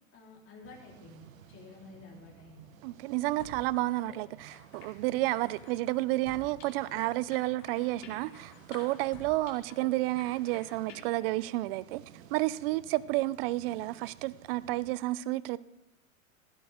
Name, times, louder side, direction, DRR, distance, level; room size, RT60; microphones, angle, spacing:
voice 1, 0.1-2.7, left 3 dB, 30° left, -2 dB, 3.8 m, -51 dB
sound 1, 0.6-14.9, right 10 dB, 75° right, 1.1 m, -55 dB
voice 2, 2.8-12.0 12.3-15.6, right 18 dB, 45° right, 19 dB, 0.5 m, -31 dB
sound 2, 3.4-3.6 4.0-4.1 4.5-4.9 5.3-7.0 7.3-9.9 10.2-11.0, left 4 dB, 60° left, 4.8 m, -51 dB
15.5 x 12.0 x 3.7 m, 0.97 s
hypercardioid pair, 125°, 41 cm